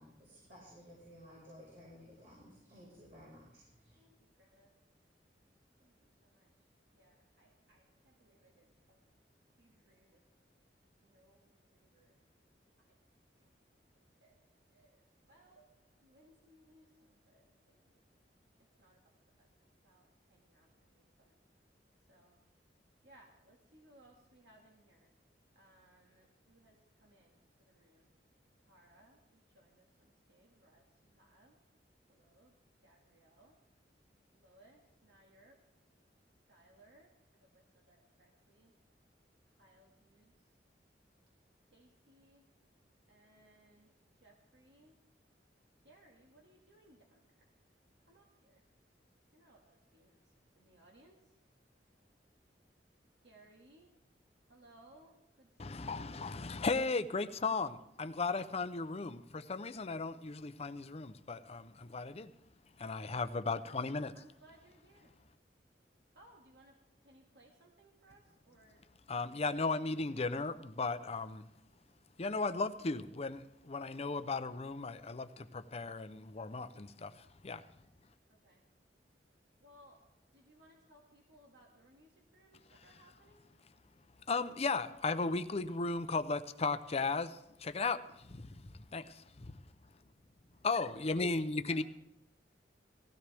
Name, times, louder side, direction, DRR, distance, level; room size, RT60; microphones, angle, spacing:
voice 1, 0.0-4.0, equal, 55° right, 5.4 m, -56 dB
voice 2, 3.9-4.8 5.8-6.5 6.9-9.1 9.6-10.2 11.0-12.2 12.9-13.0 13.4-13.5 14.2-14.4 14.7-15.8 16.0-18.0 18.8-19.0 19.8-21.4 22.1-22.4 23.0-25.1 25.6-28.1 28.7-31.5 32.1-32.5 32.8-33.5 34.3-35.6 36.5-37.1 37.4-38.7 39.6-40.3 41.7-42.4 43.1-43.9 44.2-45.0 45.8-47.5 48.1-48.6 49.3-50.2 50.6-51.2 53.2-53.9 54.5-56.2 64.1-65.1 66.1-66.8 67.0-68.8 70.1-70.3 78.3-78.6 79.6-80.0 80.3-83.4 90.9-91.2 91.7-91.8, right 1 dB, 70° right, 1.9 m, -65 dB
voice 3, 55.6-62.3 62.8-64.1 69.1-71.5 72.2-77.6 82.9-83.0 84.3-89.6 90.6-91.8, left 3 dB, 35° left, 0.6 m, -36 dB
18.5 x 15.5 x 3.5 m
head